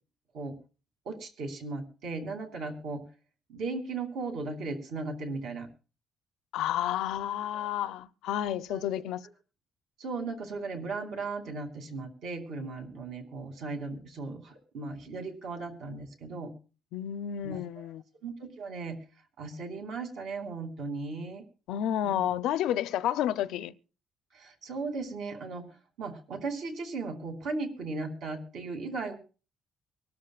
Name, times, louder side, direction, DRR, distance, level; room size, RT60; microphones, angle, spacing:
voice 1, 1.0-3.0 3.5-5.7 7.5-7.7 8.7-9.0 10.0-16.5 17.4-17.9 18.2-19.0 19.4-21.4 22.0-22.3 24.3-25.7 26.0-29.2, right 3 dB, 65° right, 2.7 m, -37 dB
voice 2, 6.5-9.2 16.9-18.0 21.7-23.7, left 11 dB, 85° left, 0.5 m, -30 dB
24.5 x 12.5 x 2.4 m
cardioid pair, 165°, 0 cm